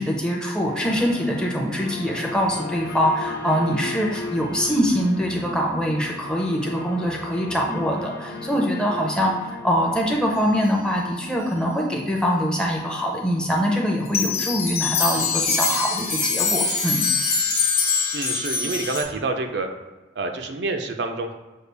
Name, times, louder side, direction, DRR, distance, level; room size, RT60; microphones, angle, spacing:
voice 1, 0.0-17.0, equal, 5° left, -1 dB, 0.5 m, -23 dB
sound 1, 0.6-17.0, left 2 dB, 85° left, 0.9 m, -38 dB
sound 2, 14.0-19.0, left 5 dB, 35° left, 1.2 m, -23 dB
voice 2, 18.1-19.7 20.1-21.3, right 3 dB, 70° right, 5 dB, 0.4 m, -27 dB
6.5 x 2.4 x 3.3 m, 1.2 s
head